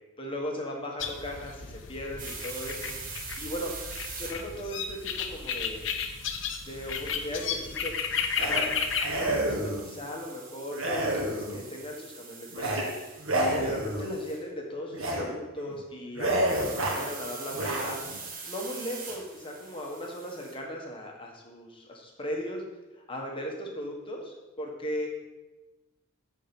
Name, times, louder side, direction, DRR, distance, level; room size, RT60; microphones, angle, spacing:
voice 1, 0.2-3.0 3.4-3.7 4.1-5.9 6.7-8.0 8.4-8.7 9.1-12.8 13.3-18.0 18.5-22.6 23.1-25.1, equal, 25° left, 0 dB, 1.5 m, -37 dB
sound 1, 1.0-9.3, left 6 dB, 60° left, 0.8 m, -33 dB
sound 2, 2.2-14.4 16.5-20.5, right 4 dB, 40° right, 1.5 m, -44 dB
sound 3, 8.4-8.6 9.0-9.9 10.7-11.7 12.5-12.8 13.2-14.1 14.9-15.2 15.6-15.8 16.1-17.1 17.5-18.2, right 1 dB, 85° right, 1.8 m, -29 dB
10.5 x 4.6 x 7.1 m, 1.1 s
head